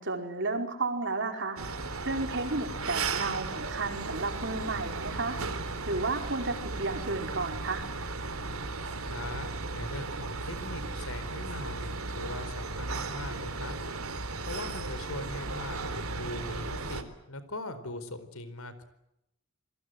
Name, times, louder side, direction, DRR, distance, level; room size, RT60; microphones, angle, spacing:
voice 1, 0.0-1.6 2.0-5.4 5.9-7.9, right 3 dB, 55° right, 5 dB, 4.9 m, -32 dB
sound 1, 1.6-17.0, right 3 dB, 75° right, 3.5 m, -35 dB
voice 2, 9.0-13.8 14.4-18.8, left 1 dB, 75° left, 12 dB, 4.5 m, -41 dB
29.0 x 23.0 x 7.9 m, 0.86 s
head